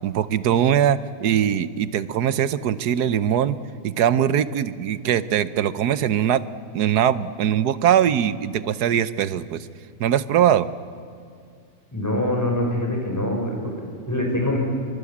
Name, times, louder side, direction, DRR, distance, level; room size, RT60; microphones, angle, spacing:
voice 1, 0.0-3.6 3.8-6.4 6.7-9.7 10.0-10.7, right 9 dB, 90° right, 15 dB, 1.4 m, -21 dB
voice 2, 11.9-14.6, left 1 dB, 10° left, 0 dB, 5.9 m, -24 dB
24.0 x 23.5 x 8.6 m, 2.3 s
omnidirectional pair, 1.7 m